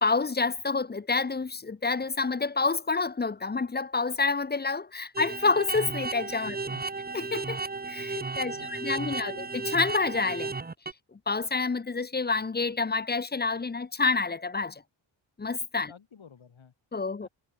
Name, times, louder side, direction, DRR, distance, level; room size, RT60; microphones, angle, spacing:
voice 1, 0.0-6.6 7.1-7.6 7.9-10.5 11.1-14.8 15.4-15.9 16.9-17.3, left 4 dB, 20° left, 0.6 m, -28 dB
sound 1, 5.1-10.9, right 3 dB, 20° right, 0.8 m, -34 dB
voice 2, 8.4-9.4 15.8-16.7 17.2-17.3, left 6 dB, 70° left, 3.2 m, -53 dB
cardioid pair, 70°, 49 cm